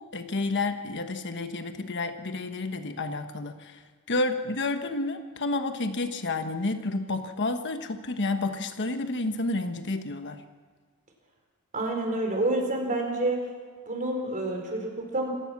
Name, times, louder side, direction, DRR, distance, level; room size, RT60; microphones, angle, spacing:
voice 1, 0.0-3.8 4.1-10.4, left 2 dB, 55° left, 7 dB, 1.2 m, -30 dB
voice 2, 11.7-13.4 13.9-15.3, right 2 dB, 35° right, 1 dB, 4.7 m, -28 dB
27.0 x 16.0 x 6.0 m, 1.5 s
head